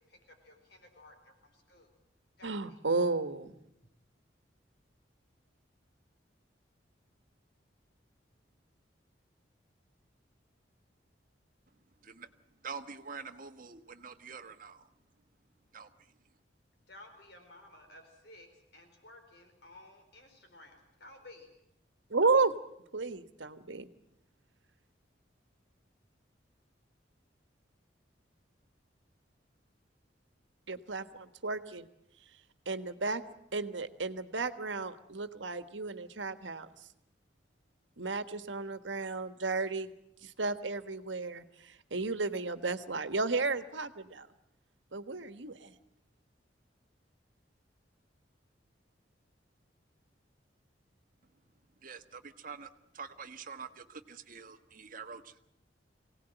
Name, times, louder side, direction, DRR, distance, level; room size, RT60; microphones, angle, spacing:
voice 1, 0.0-1.9 2.4-2.8 16.9-21.5, left 2 dB, 60° left, 5 dB, 4.5 m, -55 dB
voice 2, 2.4-3.5 22.1-22.5 22.9-23.9 30.7-31.9 32.7-33.2 33.5-36.7 38.0-39.9 40.2-44.3 44.9-45.7, right 3 dB, 90° right, 11 dB, 1.4 m, -33 dB
voice 3, 12.6-14.9 15.7-15.9 51.8-55.4, right 5 dB, 50° right, 9 dB, 1.3 m, -46 dB
24.0 x 18.0 x 9.1 m, 0.81 s
head